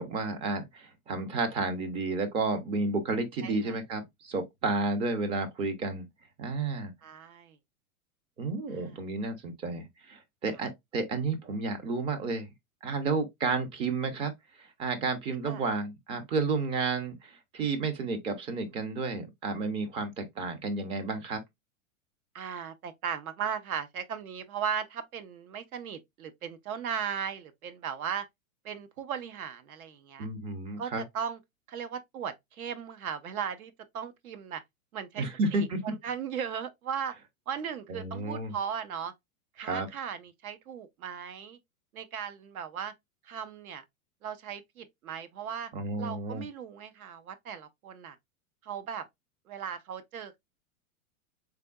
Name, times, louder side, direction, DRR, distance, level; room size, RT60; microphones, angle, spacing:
voice 1, 0.0-6.1 6.4-6.9 8.4-12.5 12.8-14.3 14.6-21.4 30.2-31.0 35.2-35.9 37.9-38.5 39.6-39.9 45.7-46.4, right 3 dB, 15° right, 0.4 m, -31 dB
voice 2, 3.4-3.7 7.0-7.6 8.7-9.0 10.5-10.7 15.4-15.6 22.3-28.3 28.6-30.3 30.8-31.4 31.7-34.6 34.9-37.2 37.5-39.1 39.6-41.6 41.9-42.9 43.2-43.8 44.2-45.7 46.0-48.2 48.6-49.1 49.5-50.4, right 7 dB, 80° right, 0.9 m, -37 dB
3.8 x 3.4 x 2.2 m
hypercardioid pair, 130°, 43 cm